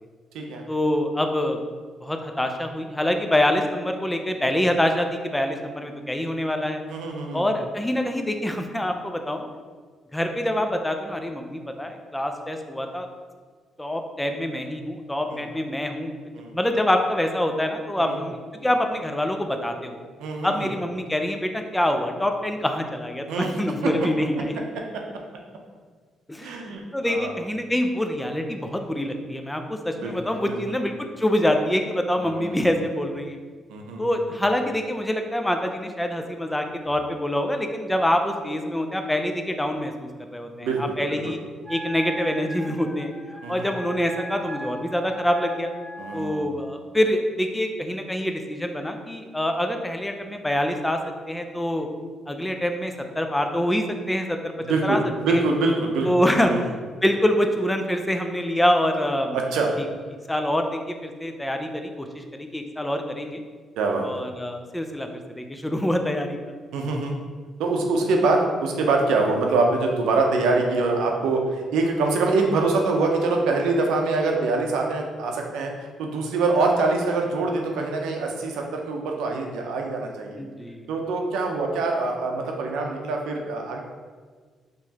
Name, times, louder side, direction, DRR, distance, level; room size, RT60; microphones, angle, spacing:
voice 1, 0.7-1.6 2.0-6.8 7.3-9.5 10.1-13.1 13.8-16.1 16.5-20.0 20.4-24.6 26.3-33.4 34.0-41.4 41.7-43.1 43.5-45.7 46.1-51.0 51.3-51.9 52.3-54.5 54.8-55.0 55.3-55.4 56.0-59.4 60.3-63.4 64.0-66.4 80.4-80.8, left 1 dB, 10° left, 5 dB, 0.4 m, -25 dB
voice 2, 6.9-7.5 15.3-15.4 16.3-16.5 18.0-18.1 20.2-20.7 23.3-23.5 23.8-23.9 26.4-27.3 30.0-30.1 30.5-30.6 32.2-32.7 33.7-34.0 40.6-40.9 41.3-41.4 43.4-43.7 46.0-46.6 54.6-56.1 56.5-56.6 59.3-59.7 63.8-64.2 66.7-67.1 67.6-75.7 76.0-80.4 80.9-83.8, right 3 dB, 90° right, 1 dB, 0.6 m, -24 dB
Wind instrument woodwind instrument, 41.6-46.5, right 1 dB, 15° right, 0.9 m, -38 dB
4.5 x 3.0 x 2.8 m, 1.5 s
cardioid pair, 90°, 0 cm